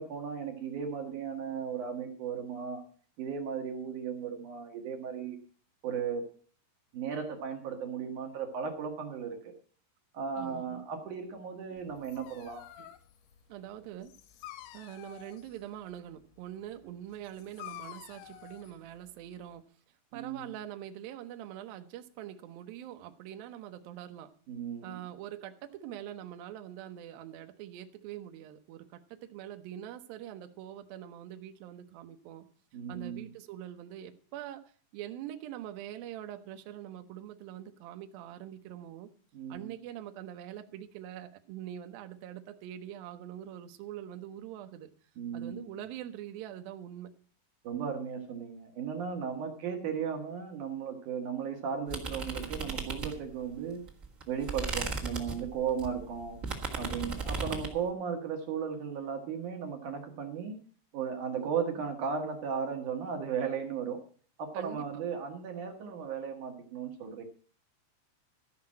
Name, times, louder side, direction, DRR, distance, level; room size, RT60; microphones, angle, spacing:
voice 1, 0.0-2.8 3.2-5.4 5.8-6.3 6.9-9.5 10.1-12.7 20.1-20.5 24.5-24.9 32.7-33.3 39.3-39.7 45.2-45.7 47.6-53.8 54.3-56.4 56.8-60.6 60.9-64.0 64.4-67.2, right 7 dB, 65° right, 4 dB, 2.0 m, -36 dB
voice 2, 10.4-10.8 12.8-12.9 13.5-14.1 14.7-19.7 20.1-24.3 24.8-32.5 32.9-34.6 34.9-39.1 39.5-44.9 45.3-47.1 57.0-57.3 64.5-65.0, right 11 dB, 85° right, 7 dB, 2.0 m, -44 dB
Dog, 11.8-19.6, left 13 dB, 80° left, 3.2 m, -50 dB
sound 1, 51.9-53.5 53.9-57.8, right 3 dB, 45° right, 1.0 m, -36 dB
13.0 x 5.9 x 8.6 m, 0.43 s
omnidirectional pair, 5.5 m